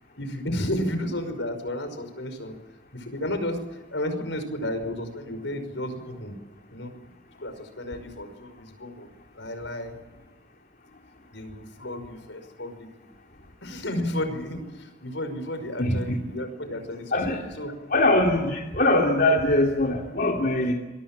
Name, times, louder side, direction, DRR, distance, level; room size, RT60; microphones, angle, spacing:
voice 1, 0.2-2.5 2.9-3.6 3.9-6.3 6.7-6.9 7.4-9.1 9.3-10.0 11.3-12.9 13.6-17.7, left 1 dB, 75° left, 9 dB, 5.5 m, -32 dB
voice 2, 15.8-16.2 17.1-17.5 17.9-20.7, left 1 dB, 50° left, 0 dB, 3.0 m, -22 dB
27.5 x 23.5 x 7.5 m, 1.1 s
head